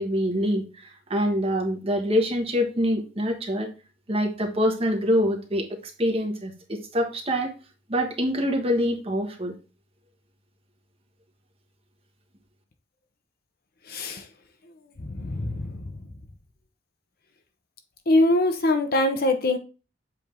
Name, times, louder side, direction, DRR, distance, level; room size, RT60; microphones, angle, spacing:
voice 1, 0.0-3.7 4.1-7.5 7.9-9.5, equal, 30° right, 2 dB, 1.2 m, -25 dB
voice 2, 13.9-14.2 15.0-15.9 18.1-19.6, left 1 dB, 50° left, 6 dB, 0.9 m, -23 dB
7.6 x 3.6 x 3.7 m, 0.33 s
head